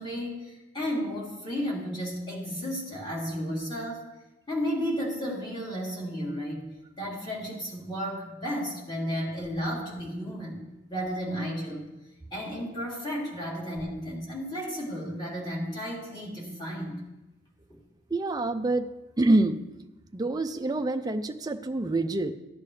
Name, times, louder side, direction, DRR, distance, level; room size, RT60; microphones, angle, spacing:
voice 1, 0.0-4.1 4.5-6.7 7.0-10.6 10.9-11.9 12.3-17.0, equal, 25° left, -5 dB, 3.1 m, -33 dB
voice 2, 18.1-18.9 19.2-19.6 20.1-22.3, right 2 dB, 20° right, 7 dB, 0.4 m, -26 dB
15.0 x 10.0 x 3.3 m, 1.0 s
head